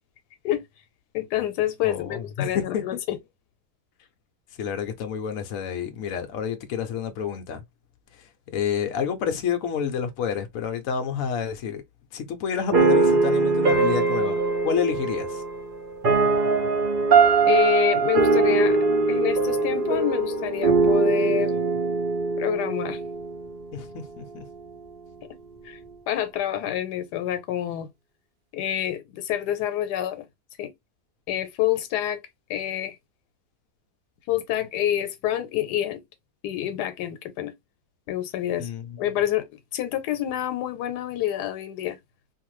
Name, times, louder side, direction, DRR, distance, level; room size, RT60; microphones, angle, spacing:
voice 1, 1.1-3.2 17.5-18.8 19.1-21.5 22.4-23.0 25.6-25.8 26.1-27.9 28.5-30.3 30.6-30.7 31.3-32.2 32.5-33.0 34.3-36.0 36.4-37.5 38.1-38.7 39.0-42.0, left 12 dB, 85° left, 1.2 m, -27 dB
voice 2, 1.8-3.0 4.6-7.6 8.1-11.8 12.1-15.4 23.7-24.4 38.6-39.0, left 7 dB, 65° left, 0.9 m, -29 dB
sound 1, 12.7-23.8, right 3 dB, 40° right, 0.8 m, -21 dB
2.7 x 2.5 x 3.0 m
omnidirectional pair, 1.7 m